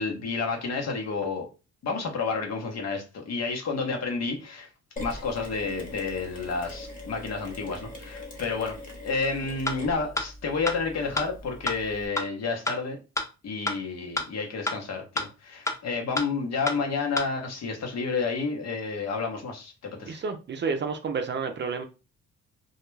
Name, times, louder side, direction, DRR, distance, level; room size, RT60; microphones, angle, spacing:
voice 1, 0.0-1.5 1.8-4.7 5.0-8.8 9.0-13.0 13.4-20.2, left 4 dB, 60° left, 0.9 m, -30 dB
Mechanisms, 5.0-12.1, left 2 dB, 30° left, 1.1 m, -42 dB
sound 1, 9.7-9.8 10.2-10.3 10.7-10.8 11.2-11.3 11.7-11.8 12.2-12.3 12.7-12.8 13.2-13.3 13.7-13.8 14.2-14.3 14.7-14.8 15.2-15.3 15.7-15.8 16.2-16.3 16.7-16.8 17.2-17.3, left 1 dB, 10° left, 0.5 m, -27 dB
voice 2, 20.1-21.8, right 5 dB, 40° right, 0.5 m, -30 dB
2.3 x 2.2 x 3.1 m
cardioid pair, 90°, 30 cm